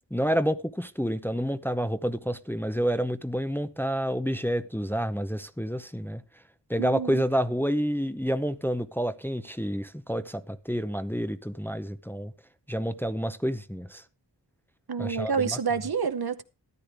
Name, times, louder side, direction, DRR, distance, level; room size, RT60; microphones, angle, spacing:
voice 1, 0.1-6.2 6.7-12.3 12.7-14.0 15.0-15.6, equal, 5° left, 0.7 m, -29 dB
voice 2, 6.8-7.2 14.9-16.4, right 6 dB, 65° right, 0.9 m, -28 dB
13.5 x 9.9 x 3.4 m
wide cardioid pair, 45°, 41 cm